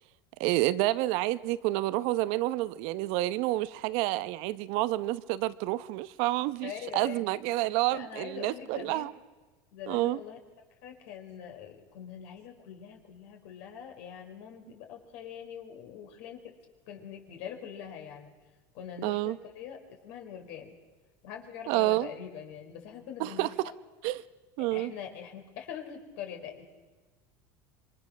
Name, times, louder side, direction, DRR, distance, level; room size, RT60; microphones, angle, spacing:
voice 1, 0.4-9.1 9.9-10.2 19.0-19.4 21.7-22.1 23.2-23.7 24.0-24.2 24.6-24.9, right 17 dB, 65° right, 15 dB, 0.9 m, -29 dB
voice 2, 6.6-7.2 7.9-9.1 9.7-10.4 10.8-16.5 16.9-18.3 18.7-20.7 21.2-23.5 24.6-26.6, left 8 dB, 70° left, 3 dB, 4.8 m, -43 dB
26.5 x 24.0 x 6.3 m, 1.3 s
supercardioid pair, 115°, 11 cm